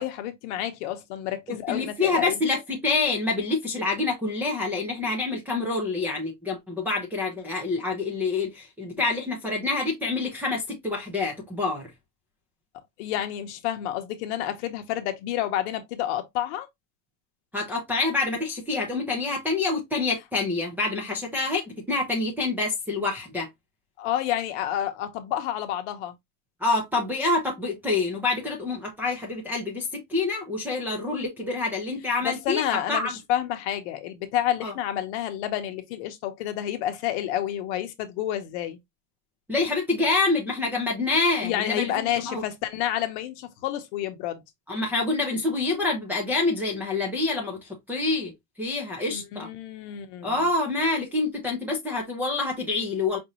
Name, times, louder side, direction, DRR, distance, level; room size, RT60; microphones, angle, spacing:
voice 1, 0.0-2.3 13.0-16.7 24.0-26.1 32.2-38.8 41.4-44.4 49.1-50.5, left 12 dB, 45° left, 0.9 m, -29 dB
voice 2, 1.5-11.9 17.5-23.5 26.6-33.1 34.6-34.7 39.5-41.9 42.2-42.5 44.7-48.3 48.6-49.5 50.2-53.2, left 3 dB, 5° right, 0.5 m, -27 dB
5.2 x 2.6 x 2.9 m
supercardioid pair, 155°, 47 cm